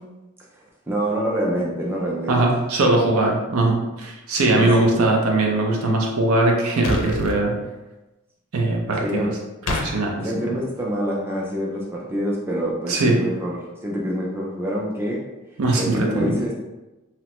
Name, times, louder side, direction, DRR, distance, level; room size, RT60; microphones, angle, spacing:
voice 1, 0.5-2.4 4.5-5.0 9.0-9.3 10.2-15.2 15.8-16.5, equal, 10° right, -3 dB, 0.3 m, -26 dB
voice 2, 2.3-7.6 8.5-9.3 9.7-10.3 12.9-13.2 15.6-16.4, right 2 dB, 85° right, 0 dB, 0.6 m, -20 dB
sound 1, 6.8-7.4 9.7-9.9, left 2 dB, 75° left, 0.4 m, -25 dB
2.9 x 2.1 x 2.9 m, 1.0 s
head